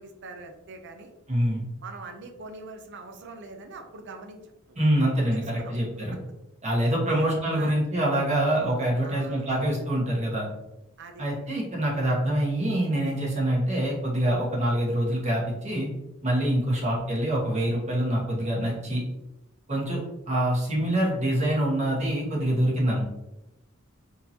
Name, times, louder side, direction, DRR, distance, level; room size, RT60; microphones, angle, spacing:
voice 1, 0.0-1.1 1.8-4.8 5.3-5.7 7.1-7.8 9.0-9.5 11.0-11.4 11.8-11.9 16.7-16.8, right 3 dB, 55° right, 5 dB, 0.5 m, -43 dB
voice 2, 1.3-1.6 4.8-6.2 6.6-10.5 11.2-15.9 16.2-19.0 19.7-23.0, right 1 dB, 35° right, -4 dB, 1.2 m, -25 dB
3.7 x 2.8 x 2.7 m, 0.91 s
head